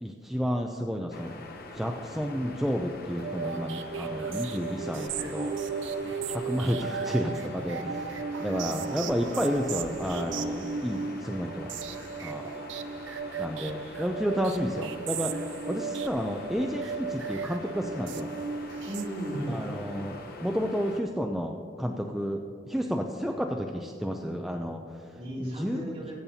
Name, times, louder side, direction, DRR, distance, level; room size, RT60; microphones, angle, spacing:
voice 1, 0.0-1.3 1.7-5.6 6.3-11.7 12.2-12.5 13.4-18.3 19.5-20.1 20.4-22.4 22.7-25.8, equal, ahead, 2 dB, 0.4 m, -31 dB
sound 1, 1.1-21.0, left 2 dB, 55° left, 0.9 m, -45 dB
sound 2, 3.2-19.6, right 5 dB, 80° right, 0.5 m, -36 dB
voice 2, 18.8-20.1 25.2-26.1, right 1 dB, 30° right, -5 dB, 2.6 m, -36 dB
19.5 x 8.6 x 2.8 m, 2.3 s
head